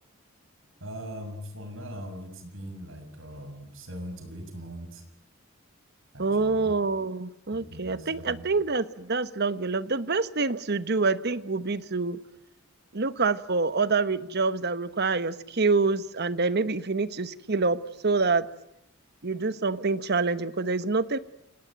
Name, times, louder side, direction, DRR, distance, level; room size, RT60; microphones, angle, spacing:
voice 1, 0.8-5.0 6.1-6.7 7.5-8.5, equal, 70° right, 6 dB, 7.0 m, -40 dB
voice 2, 6.2-12.2 12.9-18.5 19.2-21.2, right 4 dB, 50° right, 14 dB, 1.1 m, -26 dB
29.0 x 18.5 x 9.0 m, 0.84 s
head